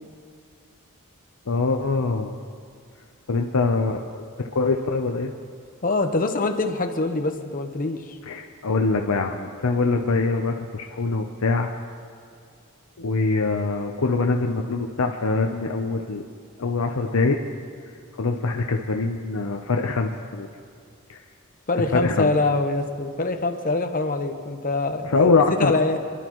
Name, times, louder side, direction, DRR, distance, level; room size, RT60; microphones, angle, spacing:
voice 1, 1.5-2.4 3.3-4.2 4.5-5.3 8.3-11.7 13.0-16.2 16.6-17.4 18.2-20.5 21.1-21.2 21.9-22.3 25.0-25.7, left 3 dB, 80° left, 3 dB, 0.7 m, -23 dB
voice 2, 5.8-8.2 21.7-25.1 25.6-26.0, left 2 dB, 40° left, 5 dB, 1.0 m, -24 dB
26.5 x 12.0 x 3.1 m, 2.3 s
head